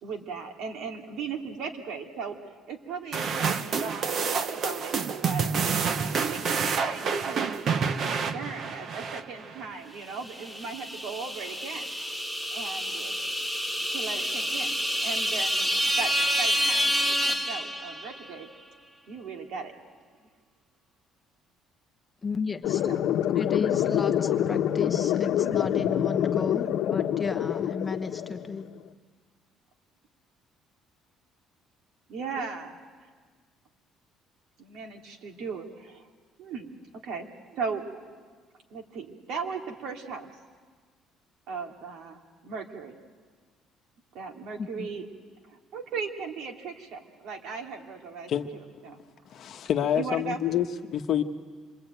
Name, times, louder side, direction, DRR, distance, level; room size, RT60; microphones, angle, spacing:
voice 1, 0.0-2.4 2.7-5.6 5.9-7.5 8.0-11.9 12.5-13.1 13.9-15.7 16.0-18.5 19.1-19.7 22.9-23.0 27.0-27.3 32.1-32.8 34.6-36.1 36.4-36.7 37.0-37.9 38.7-40.3 41.5-42.9 44.1-45.1 45.5-49.0 50.0-50.4, right 5 dB, 65° right, 3 dB, 2.8 m, -37 dB
sound 1, 3.1-9.7, right 6 dB, 40° right, 1.0 m, -28 dB
sound 2, 10.3-18.3, equal, 5° right, 1.0 m, -28 dB
voice 2, 22.2-22.9 23.3-28.7 44.6-44.9, left 4 dB, 15° left, 6 dB, 1.2 m, -33 dB
sound 3, 22.6-28.6, left 10 dB, 70° left, 1.0 m, -26 dB
voice 3, 49.3-51.2, left 10 dB, 50° left, 6 dB, 1.2 m, -27 dB
27.0 x 23.0 x 9.2 m, 1.5 s
cardioid pair, 160°, 0 cm